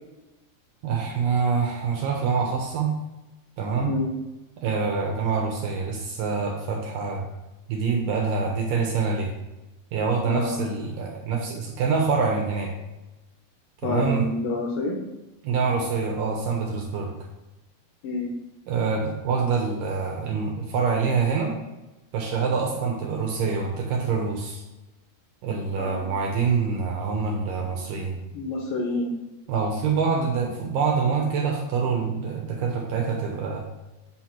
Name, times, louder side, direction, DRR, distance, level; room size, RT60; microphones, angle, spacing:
voice 1, 0.8-2.9 3.6-4.0 4.6-7.3 7.7-9.3 9.9-12.7 13.8-14.3 15.4-17.1 18.7-21.6 22.1-24.6 25.4-28.2 29.5-33.6, right 5 dB, 75° right, 1 dB, 2.1 m, -25 dB
voice 2, 10.2-10.6 13.8-15.0 18.0-18.3 25.8-26.1 28.3-29.1, left 2 dB, 70° left, 1 dB, 2.3 m, -28 dB
8.2 x 3.0 x 5.8 m, 1.0 s
omnidirectional pair, 4.7 m